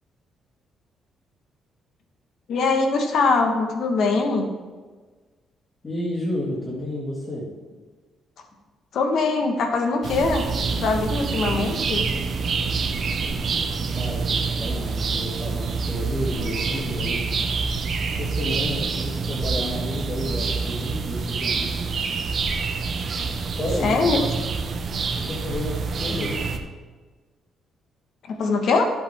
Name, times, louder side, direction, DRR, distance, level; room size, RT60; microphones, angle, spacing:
voice 1, 2.5-4.5 8.9-10.4 10.8-12.1 23.8-24.2 28.3-28.8, left 4 dB, 65° left, 4 dB, 1.4 m, -22 dB
voice 2, 5.8-7.4 13.9-17.3 18.1-21.9 23.6-24.3 25.2-26.6, equal, 30° left, -8 dB, 2.8 m, -31 dB
sound 1, 10.0-26.6, right 4 dB, 55° right, 1.0 m, -26 dB
11.5 x 7.9 x 3.6 m, 1.4 s
cardioid pair, 90°, 0 cm